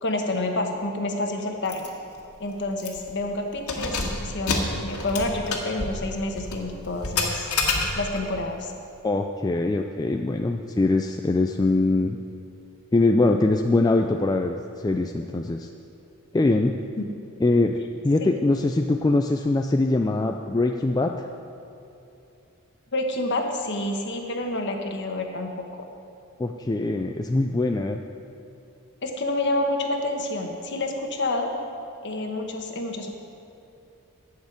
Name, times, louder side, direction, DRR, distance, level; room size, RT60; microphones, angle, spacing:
voice 1, 0.0-1.9 2.4-7.5 7.9-8.7 17.0-17.1 18.2-18.3 22.9-25.6 29.0-31.5 32.0-33.1, left 2 dB, 50° left, 3 dB, 1.3 m, -28 dB
Keys jangling, 1.7-1.9 2.2-2.3 2.8-3.1 3.6-8.3, left 3 dB, 85° left, 1.7 m, -29 dB
voice 2, 9.0-12.2 12.9-15.7 16.3-16.8 17.4-17.8 18.0-21.3 26.4-28.0, left 2 dB, 15° left, 4 dB, 0.3 m, -22 dB
11.5 x 6.5 x 8.6 m, 2.8 s
head